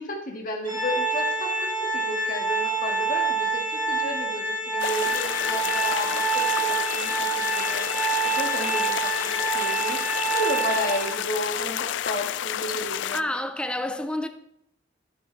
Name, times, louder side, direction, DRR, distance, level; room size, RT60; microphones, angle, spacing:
voice 1, 0.0-7.9 8.2-13.2, left 1 dB, 45° left, 2.1 m, -33 dB
Organ, 0.7-11.4, right 3 dB, 20° right, 2.5 m, -27 dB
sound 1, 4.8-13.2, left 10 dB, 80° left, 0.4 m, -30 dB
voice 2, 13.1-14.3, left 1 dB, 5° left, 0.5 m, -29 dB
12.0 x 10.5 x 4.1 m
head